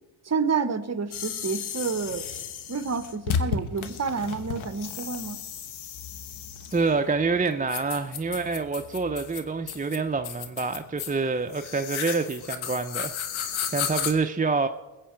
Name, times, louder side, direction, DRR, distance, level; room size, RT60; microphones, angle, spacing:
voice 1, 0.2-2.2 2.7-5.4, right 5 dB, 35° right, 12 dB, 1.1 m, -29 dB
sound 1, 1.1-14.1, left 8 dB, 85° left, 1.2 m, -34 dB
voice 2, 6.7-14.7, right 4 dB, 20° right, 7 dB, 0.6 m, -27 dB
21.0 x 8.3 x 4.5 m, 1.2 s
cardioid pair, 65°, 47 cm